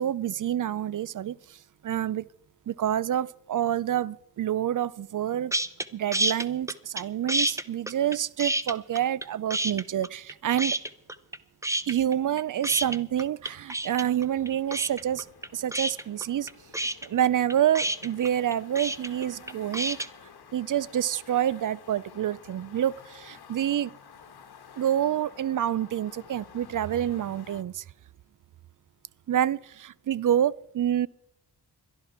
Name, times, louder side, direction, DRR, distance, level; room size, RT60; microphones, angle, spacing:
voice 1, 0.0-1.4 1.8-2.3 2.7-5.5 5.9-10.8 11.9-15.3 15.5-16.5 17.0-20.0 20.5-23.9 24.8-27.8 29.3-31.1, right 10 dB, 55° right, 0.5 m, -27 dB
sound 1, 5.5-5.9 6.1-7.0 7.3-9.3 9.5-10.3 10.6-11.4 11.6-20.1, right 1 dB, 10° right, 0.7 m, -29 dB
sound 2, 14.2-27.6, left 7 dB, 75° left, 1.2 m, -51 dB
21.5 x 12.5 x 4.3 m
cardioid pair, 70°, 38 cm